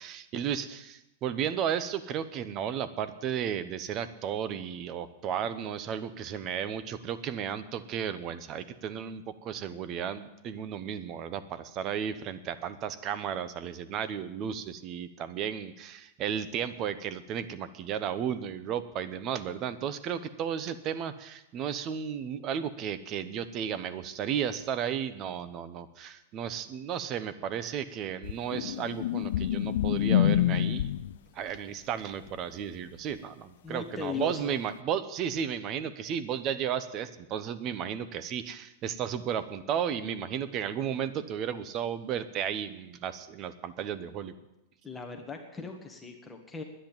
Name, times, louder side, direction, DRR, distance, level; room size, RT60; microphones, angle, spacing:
voice 1, 0.0-30.9 31.3-44.3, right 8 dB, 35° right, 14 dB, 0.9 m, -34 dB
sound 1, 28.2-31.2 34.0-34.1, left 11 dB, 75° left, 0.5 m, -27 dB
voice 2, 33.6-34.6 44.8-46.6, left 5 dB, 10° left, 3 dB, 1.6 m, -38 dB
10.5 x 10.0 x 8.9 m, 0.90 s
supercardioid pair, 145°, 0 cm